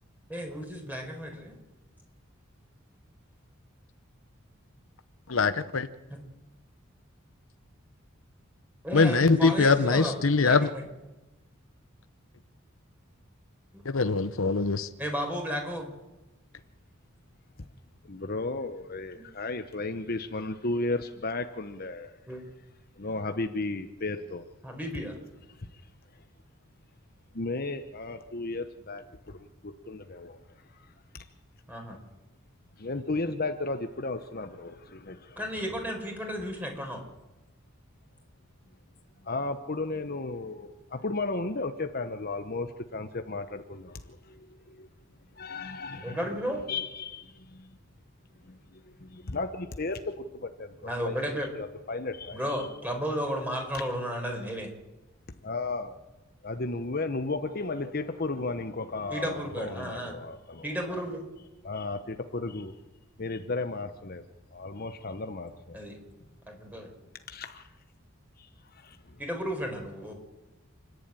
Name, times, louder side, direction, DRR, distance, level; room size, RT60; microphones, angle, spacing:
voice 1, 0.3-1.6 8.8-10.9 13.7-13.8 15.0-15.9 22.3-22.4 24.6-25.2 31.7-32.0 35.4-37.0 46.0-46.6 50.8-51.5 52.3-54.7 59.1-60.1 60.6-61.2 65.7-66.0 66.5-66.9 69.2-70.1, equal, 10° right, 2 dB, 4.7 m, -33 dB
voice 2, 5.3-5.9 8.9-10.6 13.9-14.9, left 4 dB, 70° left, 11 dB, 0.9 m, -23 dB
voice 3, 18.0-22.2 23.0-24.4 25.5-25.8 27.3-30.9 31.1-31.3 32.8-35.5 39.2-44.9 45.3-46.3 46.7-47.8 48.4-51.2 51.6-52.7 53.7-53.8 55.4-56.0 56.4-60.7 61.6-62.8 63.2-64.2 64.5-65.8 67.3-67.7 68.4-69.2, left 3 dB, 45° left, 7 dB, 1.0 m, -34 dB
29.0 x 11.0 x 9.1 m, 1.1 s
head